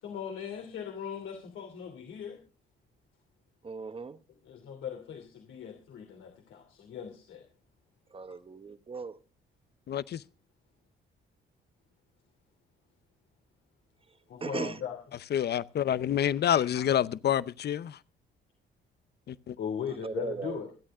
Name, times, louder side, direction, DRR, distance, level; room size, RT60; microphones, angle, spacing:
voice 1, 0.0-2.4 4.3-7.4 14.3-15.0 16.3-16.8 19.6-20.7, left 8 dB, 75° left, 2.8 m, -39 dB
voice 2, 3.6-4.2 8.1-9.2 14.4-14.8 20.0-20.6, right 4 dB, 30° right, 1.1 m, -37 dB
voice 3, 9.9-10.2 15.3-18.0 19.3-19.5, left 10 dB, 55° left, 0.7 m, -28 dB
26.0 x 9.0 x 3.7 m
cardioid pair, 90°, 20 cm